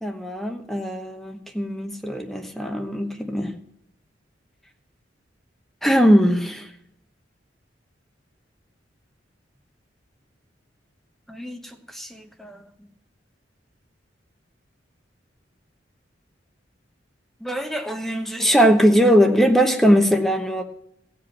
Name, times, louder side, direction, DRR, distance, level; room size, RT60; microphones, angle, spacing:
voice 1, 0.0-3.5 5.8-6.7 11.3-12.6 17.4-20.6, equal, ahead, 4 dB, 1.0 m, -20 dB
15.5 x 5.2 x 8.6 m, 0.73 s
head